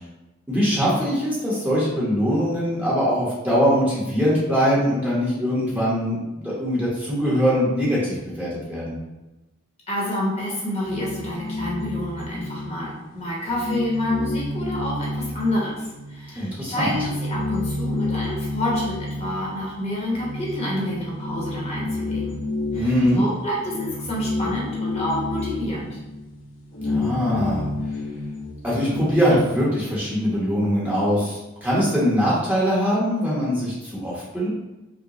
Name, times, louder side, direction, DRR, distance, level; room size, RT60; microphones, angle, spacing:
voice 1, 0.5-9.0 16.4-17.0 22.7-23.2 26.8-27.7 28.6-34.5, equal, 10° right, -8 dB, 1.0 m, -22 dB
voice 2, 9.9-22.4 22.7-26.0, left 1 dB, 35° left, -4 dB, 1.1 m, -28 dB
sound 1, 10.8-13.1 13.4-16.2 16.5-29.4, left 2 dB, 75° left, 1.2 m, -30 dB
4.9 x 2.3 x 2.9 m, 1.0 s
head